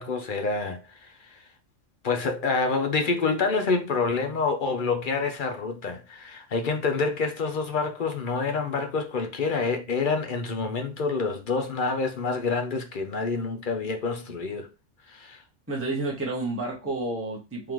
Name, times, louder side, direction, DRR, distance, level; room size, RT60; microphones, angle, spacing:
voice 1, 0.0-1.4 2.0-14.7 15.1-15.4, left 4 dB, 50° left, 0.8 m, -27 dB
voice 2, 15.7-17.7, right 2 dB, 15° right, 0.9 m, -30 dB
3.7 x 3.4 x 3.0 m
omnidirectional pair, 1.3 m